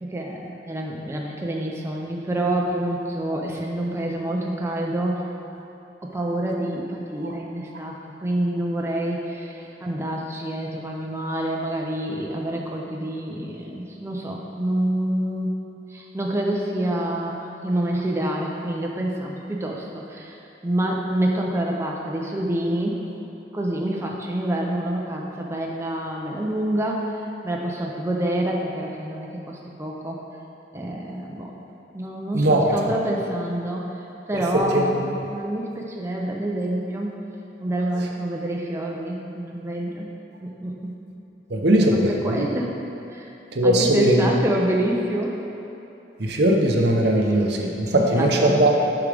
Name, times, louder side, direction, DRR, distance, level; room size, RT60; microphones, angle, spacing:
voice 1, 0.0-5.2 6.0-15.5 15.9-20.4 20.6-23.0 23.5-27.1 27.4-30.2 30.7-31.5 31.9-33.8 34.3-34.9 35.3-37.1 37.6-40.1 40.4-40.9 41.9-42.8 43.1-43.3 43.6-45.3 47.9-48.6, right 1 dB, 15° right, -1 dB, 0.5 m, -27 dB
voice 2, 32.3-32.8 34.5-34.9 38.0-38.1 41.5-42.5 43.5-44.3 46.2-48.7, right 1 dB, 65° right, 0 dB, 0.8 m, -20 dB
10.5 x 4.8 x 3.4 m, 2.9 s
head